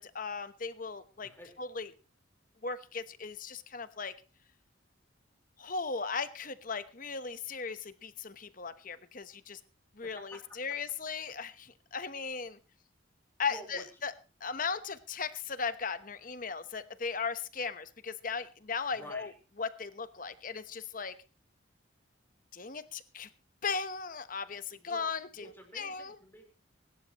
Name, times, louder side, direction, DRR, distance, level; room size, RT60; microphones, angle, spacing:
voice 1, 0.0-1.3 1.6-1.9 2.6-4.1 5.6-9.6 10.0-12.6 13.4-14.1 14.4-19.3 19.6-21.1 22.5-23.3 23.6-25.3 25.8-26.1, left 5 dB, 45° left, 12 dB, 1.0 m, -37 dB
voice 2, 1.2-1.5 10.0-10.4 10.7-10.8 13.5-13.9 18.9-19.3 24.7-26.4, equal, 10° left, 2 dB, 4.1 m, -50 dB
24.0 x 12.0 x 3.0 m, 0.33 s
head